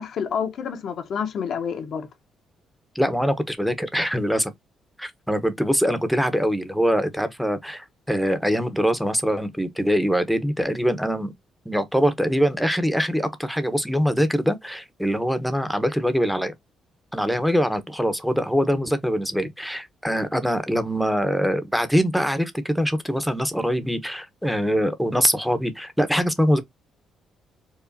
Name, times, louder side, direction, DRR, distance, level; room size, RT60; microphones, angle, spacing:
voice 1, 0.0-2.1, left 7 dB, 65° left, 0.9 m, -28 dB
voice 2, 2.9-4.5 5.0-11.3 11.6-16.5 17.1-26.6, equal, ahead, 0.9 m, -23 dB
4.7 x 2.4 x 2.6 m
cardioid pair, 90°, 0 cm